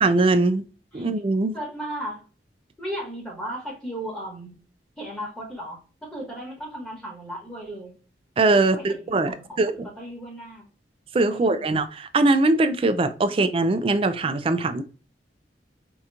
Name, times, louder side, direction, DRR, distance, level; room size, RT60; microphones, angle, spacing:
voice 1, 0.0-0.6 0.9-1.6 8.4-9.9 11.1-14.8, right 2 dB, 30° right, 0.4 m, -21 dB
voice 2, 1.5-2.2 2.8-4.6 5.0-7.9 8.5-10.7 11.3-11.7, right 1 dB, 5° left, 1.1 m, -36 dB
4.5 x 2.9 x 2.4 m
head